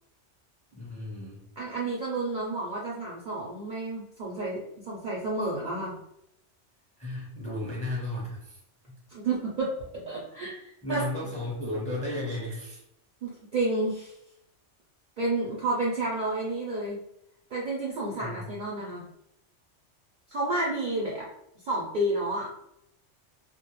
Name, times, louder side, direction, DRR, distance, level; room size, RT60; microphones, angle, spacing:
voice 1, 0.7-1.4 7.0-8.6 8.9-9.0 10.8-12.8 18.2-18.3, left 1 dB, 10° left, -4 dB, 0.5 m, -34 dB
voice 2, 1.6-6.0 9.1-11.0 13.2-14.2 15.2-17.0 17.5-19.0 20.3-21.3 21.6-22.5, right 2 dB, 60° right, -4 dB, 0.5 m, -30 dB
2.2 x 2.1 x 2.9 m, 0.79 s
omnidirectional pair, 1.2 m